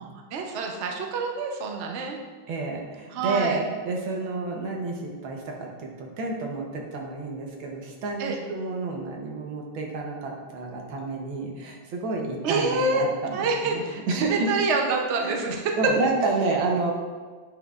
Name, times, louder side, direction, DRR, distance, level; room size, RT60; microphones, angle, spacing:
voice 1, 0.0-2.2 3.1-3.6 8.2-8.4 12.4-13.0 13.3-15.7, right 3 dB, 60° right, 2 dB, 0.7 m, -27 dB
voice 2, 2.5-14.5 15.1-16.9, right 3 dB, 90° right, 0 dB, 1.8 m, -30 dB
8.8 x 5.7 x 2.4 m, 1.5 s
omnidirectional pair, 2.1 m